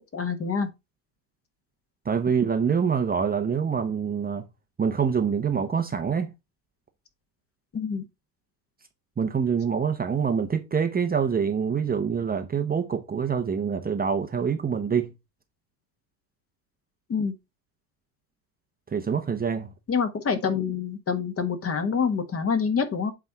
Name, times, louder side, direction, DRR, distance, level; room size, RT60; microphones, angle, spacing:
voice 1, 0.1-0.7 7.7-8.0 17.1-17.3 19.9-23.1, left 6 dB, 30° left, 1.5 m, -26 dB
voice 2, 2.0-4.4 4.8-6.3 9.2-15.1 18.9-19.7, right 6 dB, 20° right, 1.0 m, -25 dB
8.3 x 3.5 x 4.5 m
hypercardioid pair, 95°, 48 cm